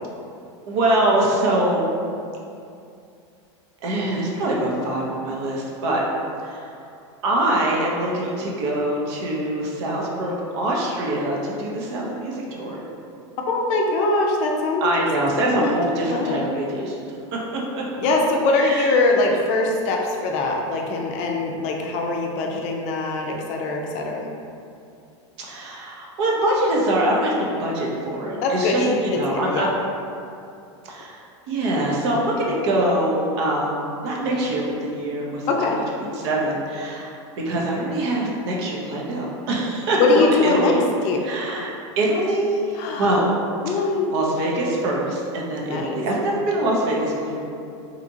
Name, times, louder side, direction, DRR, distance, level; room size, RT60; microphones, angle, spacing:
voice 1, 0.7-1.9 3.8-6.0 6.4-6.7 7.2-12.8 14.8-17.0 17.3-17.8 18.5-18.9 25.4-29.7 30.8-31.2 31.5-40.8 41.2-43.3 43.7-43.8 44.1-47.4, right 1 dB, 60° right, -3 dB, 0.7 m, -24 dB
voice 2, 13.5-15.0 15.4-15.8 16.1-16.6 18.0-24.3 28.4-29.7 35.5-35.8 40.0-40.7 41.0-41.2 42.8-43.1 43.6-44.1 45.6-46.0, left 3 dB, 50° left, 0 dB, 0.4 m, -22 dB
2.9 x 2.4 x 2.6 m, 2.5 s
hypercardioid pair, 115°, 16 cm